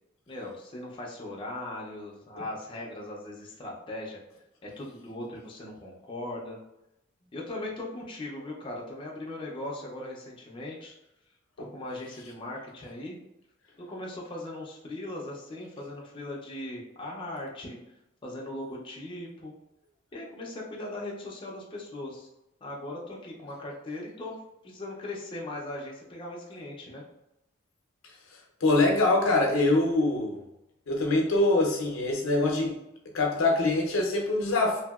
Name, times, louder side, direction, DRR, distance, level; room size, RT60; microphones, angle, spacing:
voice 1, 0.3-4.2 4.6-6.6 7.3-10.9 11.6-13.2 13.8-17.8 18.2-19.5 20.1-22.3 22.6-24.4 24.6-27.0, left 1 dB, 25° left, -3 dB, 0.4 m, -39 dB
voice 2, 28.6-30.4 30.9-32.8 33.1-34.8, left 2 dB, 85° left, 0 dB, 0.6 m, -24 dB
2.7 x 2.6 x 2.3 m, 0.88 s
head